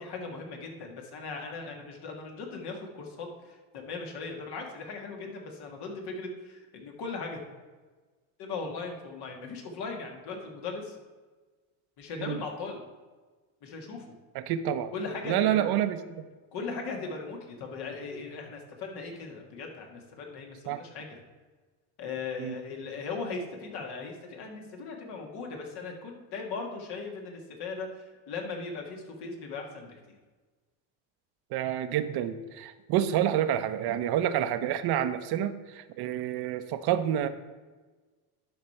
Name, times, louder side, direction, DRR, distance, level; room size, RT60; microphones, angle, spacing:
voice 1, 0.0-7.4 8.4-11.0 12.0-12.8 13.6-14.2 14.9-15.7 16.5-21.2 22.0-30.2, left 4 dB, 60° left, 2 dB, 2.0 m, -38 dB
voice 2, 14.3-14.9 15.3-16.2 20.7-20.8 22.4-22.5 31.5-37.3, right 10 dB, 60° right, 11 dB, 0.8 m, -28 dB
11.5 x 5.0 x 4.3 m, 1.3 s
cardioid pair, 115°, 44 cm